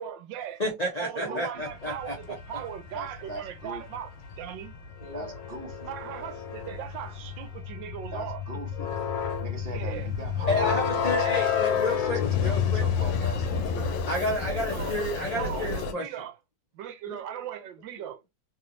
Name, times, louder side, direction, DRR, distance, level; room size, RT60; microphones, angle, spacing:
voice 1, 0.0-0.6 1.0-4.8 5.9-8.4 9.7-10.1 14.7-15.0 15.4-16.4 16.7-18.2, right 10 dB, 80° right, 1.3 m, -38 dB
voice 2, 0.6-2.2 5.0-5.3 10.5-12.8 14.1-16.1 17.1-17.2, left 1 dB, 55° left, 0.4 m, -30 dB
voice 3, 1.2-1.6 2.9-3.8 5.1-5.9 8.1-8.9 9.4-14.0, right 2 dB, 45° right, 0.8 m, -40 dB
sound 1, 1.7-15.9, left 7 dB, 80° left, 1.3 m, -30 dB
3.3 x 3.0 x 2.5 m
omnidirectional pair, 2.0 m